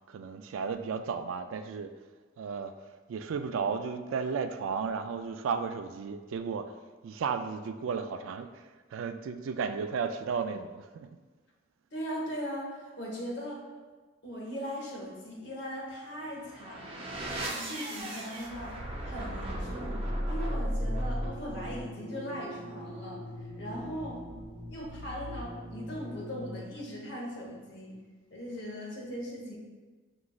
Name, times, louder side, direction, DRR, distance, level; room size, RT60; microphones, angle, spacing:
voice 1, 0.1-1.9 2.4-2.7 3.1-6.7 7.0-11.1, right 5 dB, 80° right, 8 dB, 0.3 m, -34 dB
voice 2, 11.9-13.6 14.2-17.2 17.6-23.2 23.6-24.2 24.7-28.0 28.3-29.6, equal, 60° left, -2 dB, 1.0 m, -39 dB
sound 1, 16.2-27.0, equal, 25° right, 0.5 m, -37 dB
6.0 x 3.0 x 2.3 m, 1.3 s
head